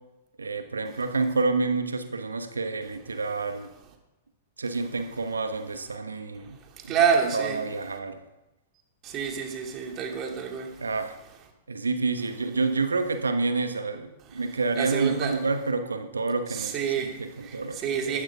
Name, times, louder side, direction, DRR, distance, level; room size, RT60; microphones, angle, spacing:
voice 1, 0.4-3.7 4.6-6.6 6.8-7.0 7.3-8.2 10.8-11.1 11.7-18.2, right 3 dB, 75° right, 1.3 m, -28 dB
voice 2, 6.9-7.6 9.0-10.7 14.7-15.4 16.5-18.2, right 7 dB, 35° right, 2.6 m, -28 dB
14.5 x 12.0 x 3.7 m
figure-of-eight pair, 100°, 0 cm